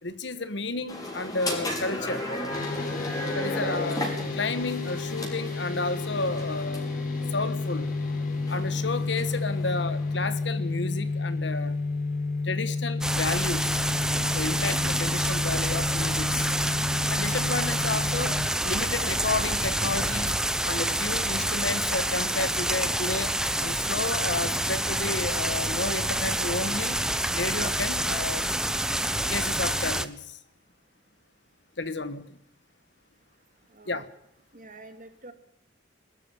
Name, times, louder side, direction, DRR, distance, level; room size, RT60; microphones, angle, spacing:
voice 1, 0.0-2.3 3.3-4.1 4.3-6.9 7.3-7.9 8.5-11.8 12.4-13.9 14.3-16.5 17.1-20.4 20.6-23.3 23.6-27.0 27.3-28.5 29.3-30.4 31.8-32.4 33.9-34.0, left 3 dB, 70° left, 12 dB, 1.5 m, -32 dB
sound 1, 0.9-10.4, left 1 dB, 20° left, 5.2 m, -35 dB
sound 2, 2.5-18.5, left 3 dB, 50° left, 4.0 m, -31 dB
sound 3, 13.0-30.1, right 1 dB, 5° right, 0.9 m, -27 dB
voice 2, 33.7-34.1 34.5-35.3, right 2 dB, 45° right, 7 dB, 2.5 m, -47 dB
21.5 x 13.0 x 9.6 m, 0.78 s
head